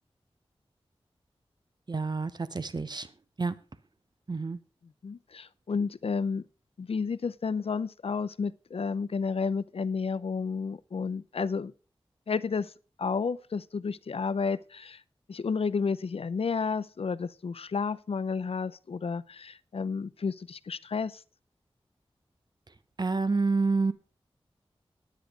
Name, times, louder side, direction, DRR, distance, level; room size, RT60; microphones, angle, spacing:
voice 1, 1.9-3.1 3.4-3.5 4.3-4.6 23.0-23.9, right 4 dB, 45° right, 0.9 m, -28 dB
voice 2, 5.0-6.5 6.8-11.7 12.3-12.7 13.0-15.0 15.3-21.2, left 5 dB, 70° left, 0.6 m, -31 dB
10.0 x 9.3 x 4.9 m
wide cardioid pair, 80°, 10 cm